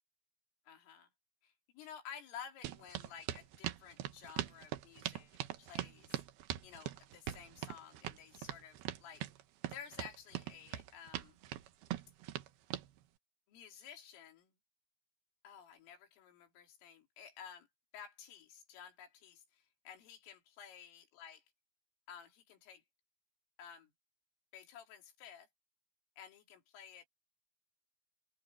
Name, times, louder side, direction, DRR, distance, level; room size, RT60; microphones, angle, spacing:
voice 1, 0.7-1.1 1.4-6.2 6.6-9.2 9.7-11.4 13.5-14.5 15.4-17.7 17.9-21.4 22.1-22.8 23.6-23.9 24.5-25.5 26.2-27.1, left 8 dB, 85° left, 5.9 m, -53 dB
sound 1, 2.6-12.9, right 13 dB, 70° right, 2.5 m, -41 dB
open air
omnidirectional pair, 5.6 m